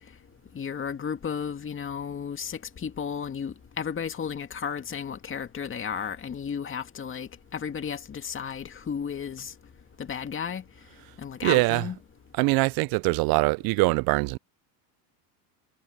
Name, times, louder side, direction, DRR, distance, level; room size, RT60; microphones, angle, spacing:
voice 1, 0.5-9.5 10.0-10.6 11.2-12.0, left 7 dB, 25° left, 2.2 m, -33 dB
voice 2, 11.4-11.9 12.3-14.4, right 26 dB, 50° right, 0.5 m, -23 dB
supercardioid pair, 110°, 47 cm